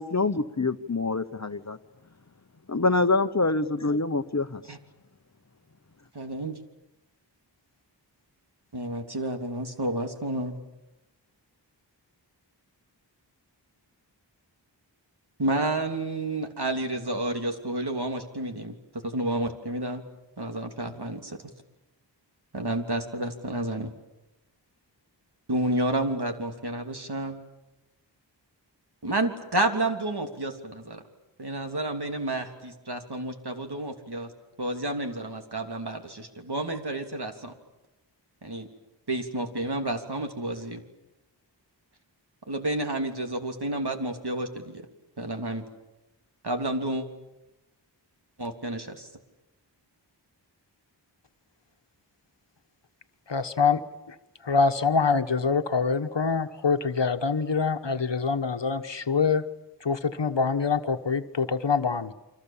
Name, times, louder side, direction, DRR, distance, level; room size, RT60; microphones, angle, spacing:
voice 1, 0.0-1.8 2.7-4.6, left 3 dB, 40° left, 11 dB, 1.1 m, -25 dB
voice 2, 6.1-6.6 8.7-10.6 15.4-20.0 20.4-21.4 22.5-23.9 25.5-27.4 29.0-31.0 31.4-34.3 34.6-37.5 38.4-38.7 39.1-40.8 42.5-44.8 45.2-45.6 46.4-47.0 48.4-49.1, right 1 dB, 60° right, 4 dB, 3.1 m, -30 dB
voice 3, 53.3-53.8 54.4-59.4 59.8-62.1, left 5 dB, 70° left, 9 dB, 1.4 m, -25 dB
29.5 x 25.0 x 7.4 m, 0.97 s
wide cardioid pair, 55°, 44 cm